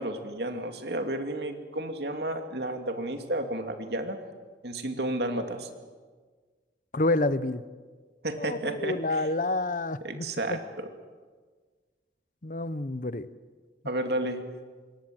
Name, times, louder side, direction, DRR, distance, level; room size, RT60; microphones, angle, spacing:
voice 1, 0.0-4.2 4.6-5.7 8.2-9.3 10.0-10.9 13.8-14.4, right 1 dB, 70° right, 6 dB, 2.6 m, -32 dB
voice 2, 6.9-7.6 8.4-10.6 12.4-13.3, left 2 dB, 45° left, 15 dB, 0.9 m, -29 dB
26.5 x 22.0 x 7.8 m, 1.5 s
head